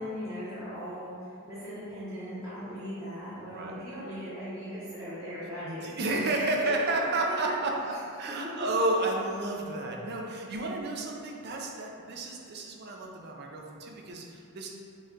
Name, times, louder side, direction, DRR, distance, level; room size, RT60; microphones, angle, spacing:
voice 1, 0.0-6.5 7.9-8.0 8.4-8.5, equal, 15° right, -13 dB, 0.9 m, -39 dB
voice 2, 3.4-3.8 5.6-14.7, right 2 dB, 50° right, 0 dB, 0.5 m, -31 dB
5.2 x 2.3 x 3.7 m, 2.5 s
head